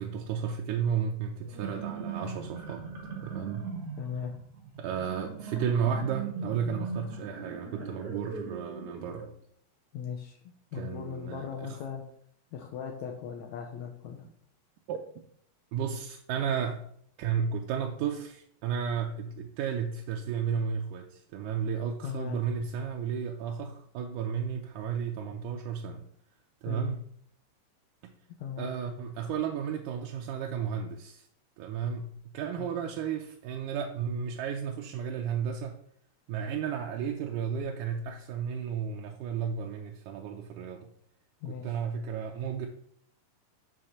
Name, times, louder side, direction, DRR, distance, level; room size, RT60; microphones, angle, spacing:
voice 1, 0.0-2.9 3.2-3.7 4.8-9.3 10.7-11.8 14.9-15.0 15.7-16.9 17.2-26.1 26.6-27.1 28.6-31.3 31.6-35.8 36.3-40.9 41.5-42.7, right 7 dB, 80° right, 3 dB, 2.0 m, -33 dB
sound 1, 1.4-9.3, right 5 dB, 55° right, 1.7 m, -40 dB
voice 2, 4.0-4.3 9.9-10.4 10.7-12.0 12.5-14.2 22.0-22.4 26.6-26.8 28.4-28.7 32.6-32.8 41.4-41.7, left 7 dB, 75° left, 2 dB, 1.7 m, -38 dB
5.6 x 4.8 x 6.4 m, 0.66 s
omnidirectional pair, 4.0 m